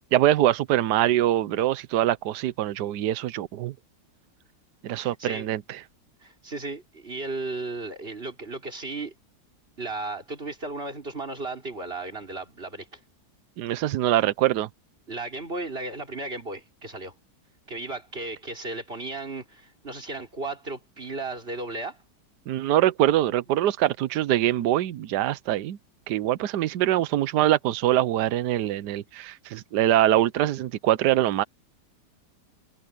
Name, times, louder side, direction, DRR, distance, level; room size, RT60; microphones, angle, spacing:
voice 1, 0.1-3.7 4.8-5.6 13.6-14.7 22.5-25.8 26.1-31.4, right 13 dB, 80° right, 1.3 m, -23 dB
voice 2, 5.0-5.5 6.2-9.1 9.8-13.0 15.1-17.1 17.7-22.0, right 2 dB, 35° right, 4.2 m, -35 dB
omnidirectional pair, 1.8 m